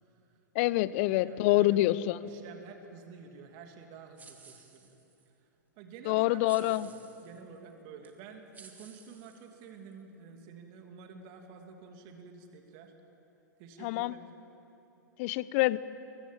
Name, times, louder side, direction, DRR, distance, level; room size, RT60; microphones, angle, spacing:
voice 1, 0.5-2.2 6.1-6.9 13.8-14.1 15.2-15.8, left 17 dB, 45° left, 18 dB, 0.8 m, -26 dB
voice 2, 1.2-5.0 5.8-6.9 7.2-12.9 13.6-14.3, right 5 dB, 40° right, 4 dB, 2.9 m, -50 dB
sound 1, 4.2-5.3 6.4-7.4 8.0-8.1 8.5-9.9, right 5 dB, 15° right, 2.6 m, -55 dB
28.0 x 23.5 x 7.5 m, 2.9 s
figure-of-eight pair, 105°, 10 cm